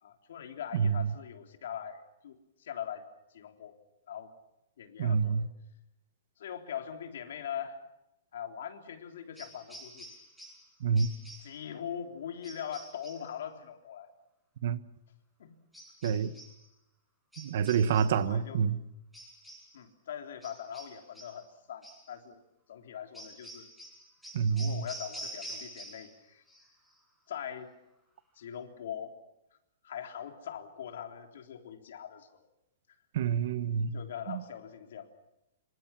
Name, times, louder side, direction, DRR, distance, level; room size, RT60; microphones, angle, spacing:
voice 1, 0.0-3.1 3.3-3.8 4.1-4.3 4.8-5.5 6.4-7.8 8.3-10.1 11.4-14.1 15.4-15.6 18.2-18.6 19.7-22.4 22.7-23.7 24.5-26.4 27.3-27.7 28.4-29.1 29.8-32.5 33.9-35.1, left 8 dB, 65° left, 3.6 m, -42 dB
voice 2, 0.7-1.1 5.0-5.5 10.8-11.1 14.6-14.8 16.0-16.3 17.4-18.8 24.3-24.8 33.1-34.0 34.3-34.4, right 6 dB, 50° right, 1.2 m, -28 dB
sound 1, 9.4-10.7 11.0-11.6 12.4-13.3 15.7-16.6 17.3-18.3 19.1-19.8 20.4-21.4 21.8-22.1 23.1-26.2 26.5-27.0, right 1 dB, ahead, 6.8 m, -47 dB
27.0 x 25.5 x 6.0 m
hypercardioid pair, 175°, 0 cm